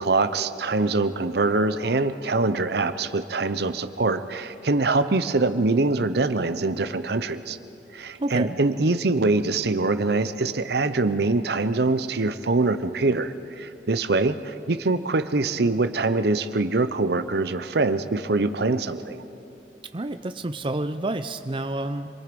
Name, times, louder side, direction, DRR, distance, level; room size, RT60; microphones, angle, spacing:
voice 1, 0.0-7.6 7.9-19.2, right 3 dB, 65° right, 11 dB, 0.8 m, -24 dB
voice 2, 8.2-8.6 19.9-22.1, right 2 dB, 30° right, 9 dB, 0.6 m, -29 dB
27.5 x 22.5 x 5.3 m, 2.7 s
head